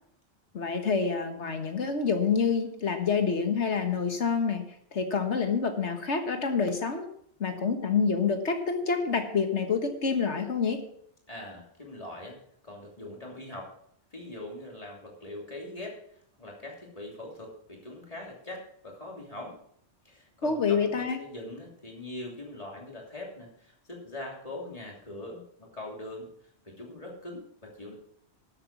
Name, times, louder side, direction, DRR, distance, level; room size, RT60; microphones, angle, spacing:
voice 1, 0.5-4.6 4.9-7.1 7.4-10.8 20.4-21.2, left 5 dB, 80° left, 6 dB, 1.8 m, -27 dB
voice 2, 11.3-12.4 12.6-13.7 14.1-15.9 16.4-19.6 20.0-26.3 26.6-28.0, left 1 dB, 30° left, -1 dB, 3.2 m, -42 dB
12.0 x 8.2 x 6.0 m, 0.67 s
omnidirectional pair, 1.2 m